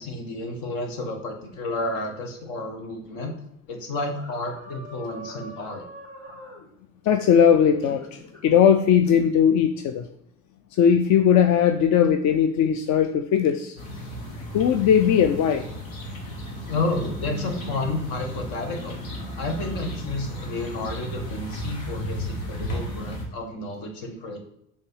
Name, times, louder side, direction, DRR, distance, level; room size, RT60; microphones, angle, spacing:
voice 1, 0.0-3.3 3.7-5.8 16.7-19.0 19.3-24.4, left 2 dB, 60° left, 4 dB, 1.6 m, -31 dB
sound 1, 4.1-6.7 7.8-8.4 9.1-9.3, right 1 dB, 10° left, 2.2 m, -42 dB
voice 2, 7.0-10.0 10.8-13.8 14.5-15.7, left 8 dB, 45° left, 8 dB, 0.6 m, -19 dB
sound 2, 13.8-23.3, equal, 75° left, 1.6 m, -34 dB
5.4 x 3.5 x 5.5 m, 0.77 s
figure-of-eight pair, 65°, 41 cm